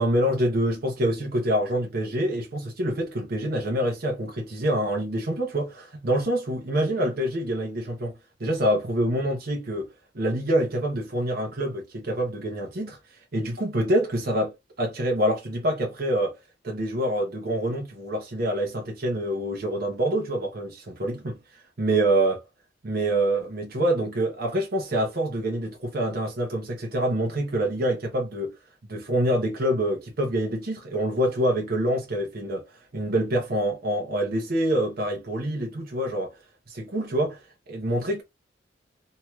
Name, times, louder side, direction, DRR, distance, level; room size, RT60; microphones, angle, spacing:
voice 1, 0.0-8.1 8.4-9.9 10.1-13.0 13.3-16.3 16.6-21.4 21.8-22.4 22.8-28.5 28.9-32.6 32.9-36.3 36.7-37.4 37.7-38.2, right 1 dB, 55° right, 0.8 m, -26 dB
2.7 x 2.3 x 3.0 m
head